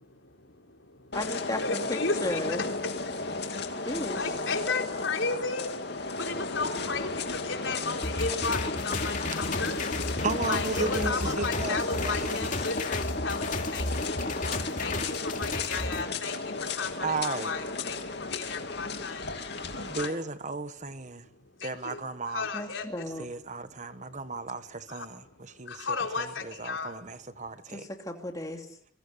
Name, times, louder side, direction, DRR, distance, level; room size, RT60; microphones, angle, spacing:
voice 1, 0.1-1.2 1.6-2.6 3.0-9.8 10.4-14.4 14.8-19.3 19.9-20.2 21.6-22.0 22.3-22.9 24.0-24.3 24.9-25.1 25.6-27.0, left 4 dB, 80° left, 4.0 m, -35 dB
sound 1, 1.1-20.1, left 3 dB, 60° left, 2.7 m, -34 dB
voice 2, 1.1-2.7 3.9-4.2 22.5-23.2 27.7-28.7, left 1 dB, 20° left, 2.8 m, -34 dB
sound 2, 8.0-16.0, left 2 dB, 40° left, 2.5 m, -33 dB
voice 3, 10.2-12.5 17.0-17.5 19.3-21.3 21.6-22.5 23.2-27.9, right 3 dB, 40° right, 1.3 m, -35 dB
26.5 x 23.0 x 6.9 m
head